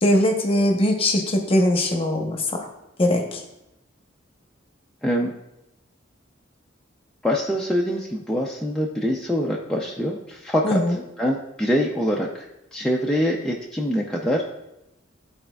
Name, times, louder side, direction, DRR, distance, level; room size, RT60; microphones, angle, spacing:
voice 1, 0.0-2.7 3.0-3.4 10.6-11.0, left 1 dB, 30° left, 2 dB, 0.9 m, -21 dB
voice 2, 5.0-5.3 7.2-10.8 11.2-12.4 12.7-14.4, equal, 5° left, -3 dB, 0.4 m, -24 dB
12.5 x 4.2 x 2.3 m, 0.89 s
head